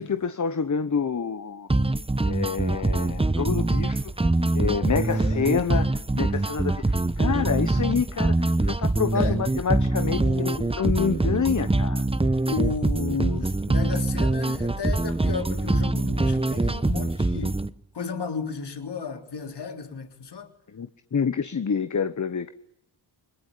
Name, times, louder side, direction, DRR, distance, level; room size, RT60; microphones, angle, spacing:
voice 1, 0.0-1.7 2.2-4.1 4.5-10.5 10.8-12.1 20.7-22.5, left 6 dB, 40° left, 1.1 m, -27 dB
sound 1, 1.7-17.7, right 2 dB, 10° right, 1.0 m, -24 dB
voice 2, 4.9-5.5 9.1-9.4 10.0-10.8 12.4-17.6 17.9-20.5, left 5 dB, 60° left, 3.5 m, -33 dB
29.5 x 21.0 x 8.6 m
cardioid pair, 75°, 46 cm